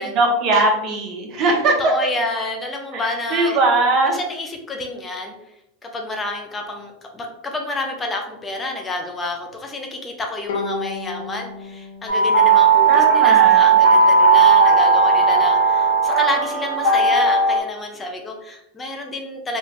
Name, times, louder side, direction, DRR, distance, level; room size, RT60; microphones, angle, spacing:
voice 1, 0.0-1.9 2.9-4.2 12.9-13.7, right 2 dB, 45° right, 1 dB, 0.8 m, -20 dB
voice 2, 1.8-3.6 4.0-5.3 5.8-19.6, left 2 dB, 20° left, 2 dB, 0.5 m, -29 dB
Bowed string instrument, 10.5-13.8, left 3 dB, 85° left, 0.6 m, -33 dB
sound 1, 12.1-17.6, right 5 dB, 50° left, 0.8 m, -15 dB
3.1 x 2.4 x 3.2 m, 0.85 s
supercardioid pair, 120°, 0 cm